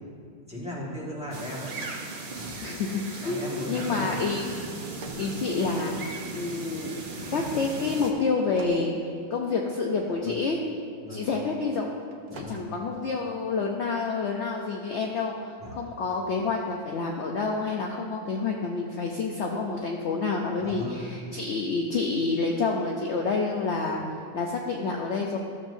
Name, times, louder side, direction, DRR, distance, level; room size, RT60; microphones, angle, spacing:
voice 1, 0.5-1.8 2.3-2.7 3.2-4.3 10.2-10.4 11.0-11.3 12.3-12.6 15.6-15.7 20.6-21.0, equal, 5° right, -7 dB, 1.5 m, -37 dB
sound 1, 1.3-8.1, right 3 dB, 40° right, 0.9 m, -37 dB
voice 2, 2.6-4.4 5.2-6.0 6.3-7.0 7.3-10.6 11.1-12.0 12.3-25.4, left 4 dB, 60° left, 0 dB, 0.8 m, -28 dB
sound 2, 4.7-6.1 8.3-9.9 12.0-12.6, right 4 dB, 80° right, 1.2 m, -48 dB
13.0 x 7.4 x 2.6 m, 2.3 s
omnidirectional pair, 1.6 m